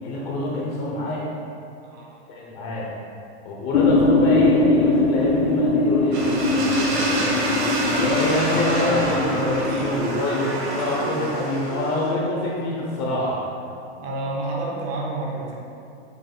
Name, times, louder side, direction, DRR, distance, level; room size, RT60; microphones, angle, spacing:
voice 1, 0.0-1.2 2.3-2.9 3.4-7.2 7.9-13.4, left 2 dB, 25° left, -4 dB, 0.9 m, -26 dB
voice 2, 1.8-2.4 9.6-9.9 14.0-15.5, right 2 dB, 25° right, -3 dB, 0.9 m, -30 dB
sound 1, 3.7-9.9, left 2 dB, 80° left, 0.8 m, -21 dB
sound 2, 6.1-12.1, right 2 dB, 45° right, 1.5 m, -26 dB
7.3 x 2.9 x 6.0 m, 2.5 s
supercardioid pair, 170°, 34 cm